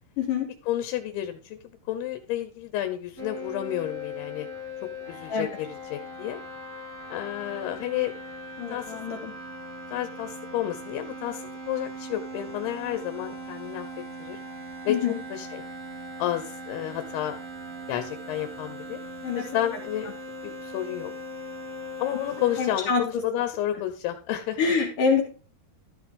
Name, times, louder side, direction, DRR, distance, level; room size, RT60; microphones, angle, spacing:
voice 1, 0.7-1.6 1.9-4.5 5.1-6.4 7.1-8.1 8.7-9.0 9.9-13.9 14.2-14.4 14.8-15.0 15.3-15.6 16.2-17.4 17.9-19.0 19.3-20.1 20.4-21.1 22.0-24.6, left 12 dB, 90° left, 8 dB, 3.0 m, -31 dB
sound 1, 3.2-22.8, equal, 20° right, 1.7 m, -39 dB
voice 2, 8.6-9.3 14.9-15.2 19.2-19.4 22.6-23.0 24.6-25.2, left 5 dB, 65° left, 0 dB, 3.1 m, -25 dB
13.5 x 6.3 x 3.6 m, 0.37 s
omnidirectional pair, 4.5 m